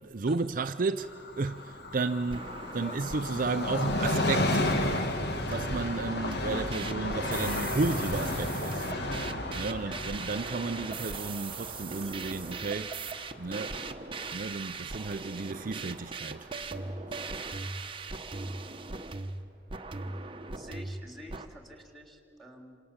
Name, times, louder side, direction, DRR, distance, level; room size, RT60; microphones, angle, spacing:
voice 1, 0.0-4.6 5.5-8.9 9.5-13.0 13.4-13.8 14.3-16.5, right 3 dB, 50° right, 0.6 m, -33 dB
Train, 1.0-14.3 14.6-14.7, left 1 dB, 65° left, 2.0 m, -33 dB
sound 1, 1.6-1.9 2.3-3.4 3.9-5.2 5.5-21.5, right 4 dB, 30° right, 1.1 m, -40 dB
voice 2, 4.8-5.1 9.8-10.2 11.9-12.1 20.5-22.8, equal, ahead, 3.0 m, -48 dB
27.0 x 26.5 x 7.3 m
head